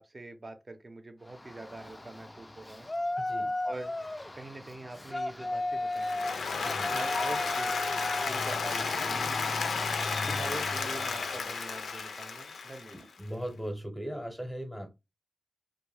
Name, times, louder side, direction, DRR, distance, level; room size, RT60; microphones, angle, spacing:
voice 1, 0.0-2.9 3.6-3.9 4.3-6.3 6.9-7.7 8.3-9.3 10.2-13.0, right 2 dB, 40° right, 0.6 m, -44 dB
Yell, 1.3-11.5, left 2 dB, 20° left, 0.3 m, -36 dB
voice 2, 3.2-3.5 6.6-7.0 12.9-14.9, equal, ahead, 0.7 m, -38 dB
Applause, 5.9-13.1, left 5 dB, 90° left, 0.4 m, -33 dB
2.6 x 2.1 x 3.3 m
cardioid pair, 60°, 0 cm